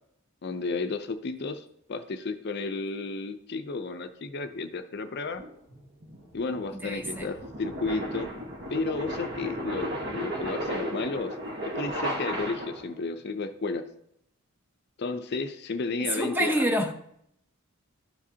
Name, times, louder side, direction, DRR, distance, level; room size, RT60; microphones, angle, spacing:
voice 1, 0.4-5.4 6.3-8.3 8.7-11.3 11.7-13.8 15.0-16.5, left 3 dB, 50° left, 0.5 m, -32 dB
sound 1, 5.4-13.0, equal, 50° right, 1.3 m, -34 dB
voice 2, 6.7-7.3 16.1-16.9, equal, 10° right, 0.8 m, -27 dB
12.5 x 5.0 x 2.8 m
head